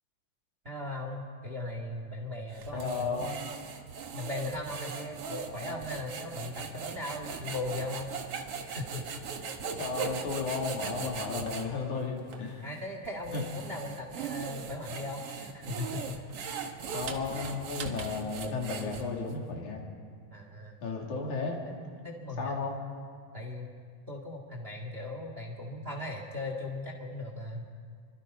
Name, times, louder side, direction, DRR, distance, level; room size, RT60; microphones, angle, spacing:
voice 1, 0.6-3.5 4.1-8.4 8.6-9.1 9.4-9.5 12.6-16.2 20.3-20.8 21.8-22.5 23.3-23.7 24.1-27.7, left 2 dB, 25° right, 2 dB, 1.8 m, -38 dB
sound 1, 2.5-11.7 12.3-12.4 13.0-19.3, right 6 dB, 55° right, 2.2 m, -39 dB
voice 2, 2.7-3.3 5.5-5.8 9.6-12.7 13.3-13.4 16.9-19.8 20.8-21.6 22.4-22.8, left 4 dB, 85° left, 0 dB, 4.2 m, -34 dB
26.5 x 24.5 x 5.4 m, 2.1 s
omnidirectional pair, 3.3 m